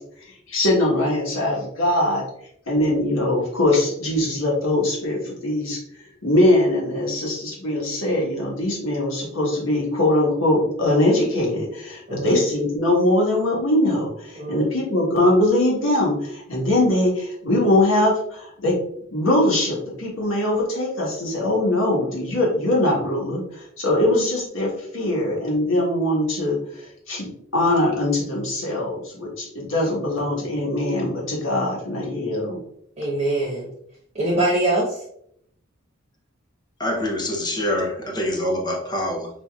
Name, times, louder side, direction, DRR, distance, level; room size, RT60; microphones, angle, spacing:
voice 1, 0.2-2.2 2.7-18.8 19.1-32.6, left 1 dB, 85° left, 1.5 m, -22 dB
voice 2, 33.0-33.7 34.1-35.0, right 1 dB, 30° right, 1.1 m, -23 dB
voice 3, 36.8-39.3, left 1 dB, 20° left, 0.8 m, -25 dB
5.0 x 2.8 x 2.4 m
head